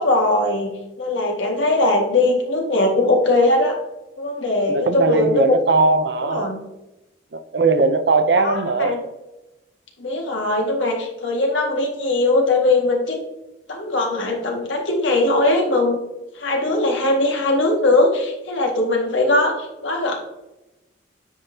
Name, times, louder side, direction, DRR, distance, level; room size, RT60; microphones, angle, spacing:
voice 1, 0.0-3.8 4.2-5.6 6.2-6.6 8.4-9.0 10.0-13.2 13.7-16.0 16.4-20.2, left 2 dB, 90° left, 0 dB, 1.8 m, -20 dB
voice 2, 4.7-6.6 7.3-9.0, right 3 dB, 65° right, 9 dB, 0.6 m, -19 dB
9.5 x 5.4 x 2.8 m, 0.97 s
head